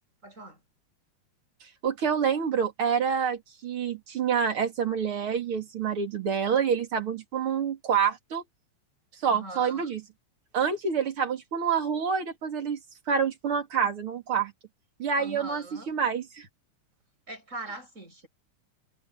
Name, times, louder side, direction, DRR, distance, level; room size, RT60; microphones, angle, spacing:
voice 1, 0.2-0.6 9.3-10.0 15.2-15.9 17.3-18.3, right 2 dB, 20° right, 8.2 m, -42 dB
voice 2, 1.8-8.4 9.2-10.0 10.5-12.8 13.1-14.5 15.0-16.5, right 7 dB, 45° right, 3.5 m, -27 dB
omnidirectional pair, 3.6 m